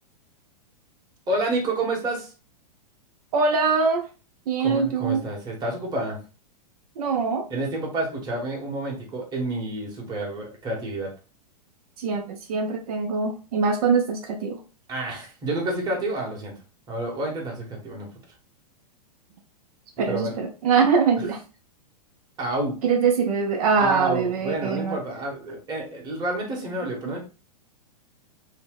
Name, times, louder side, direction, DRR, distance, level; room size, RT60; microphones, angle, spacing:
voice 1, 1.3-2.3 4.6-6.2 7.5-11.1 14.9-16.5 16.9-18.1 20.1-20.3 22.4-22.8 23.8-27.2, right 2 dB, 20° right, -1 dB, 1.0 m, -29 dB
voice 2, 3.3-4.0 4.5-5.2 7.0-7.5 12.0-14.6 20.0-21.4 22.8-25.0 27.0-27.2, right 5 dB, 65° right, 4 dB, 0.6 m, -23 dB
2.8 x 2.1 x 3.5 m, 0.33 s
hypercardioid pair, 140°, 21 cm